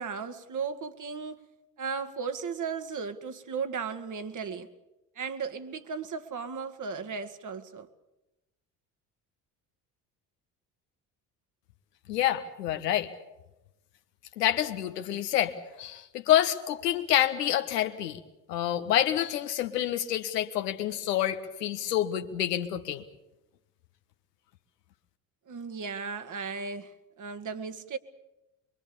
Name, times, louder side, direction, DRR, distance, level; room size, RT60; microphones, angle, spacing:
voice 1, 0.0-1.4 1.8-4.7 5.2-7.9 25.5-28.0, right 5 dB, 40° right, 2.0 m, -36 dB
voice 2, 12.1-13.1 14.4-18.2 18.5-23.0, left 12 dB, 75° left, 1.5 m, -28 dB
24.0 x 23.5 x 7.0 m
figure-of-eight pair, 50°, 48 cm